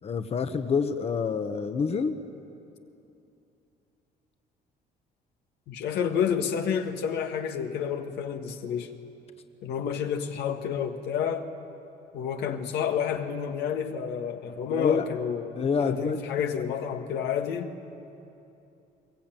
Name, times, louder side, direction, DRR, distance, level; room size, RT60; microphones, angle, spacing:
voice 1, 0.0-2.2 14.7-15.0 15.5-16.2 16.5-16.6, left 5 dB, 35° left, 8 dB, 1.2 m, -27 dB
voice 2, 5.7-8.9 9.6-11.5 12.1-15.5 15.8-17.7, left 7 dB, 80° left, 5 dB, 1.7 m, -29 dB
22.5 x 21.0 x 9.1 m, 2.8 s
cardioid pair, 110°, 17 cm